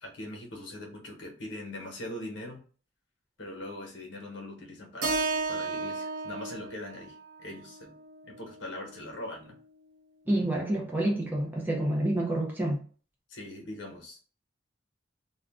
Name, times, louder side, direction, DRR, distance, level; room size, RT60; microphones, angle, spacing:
voice 1, 0.0-2.6 3.4-8.0 8.2-9.6 13.3-14.2, left 1 dB, 65° left, 1.0 m, -41 dB
Keyboard (musical), 5.0-9.2, right 3 dB, 50° right, 0.7 m, -34 dB
voice 2, 10.3-12.8, right 1 dB, 10° right, 0.5 m, -28 dB
2.4 x 2.1 x 3.4 m
head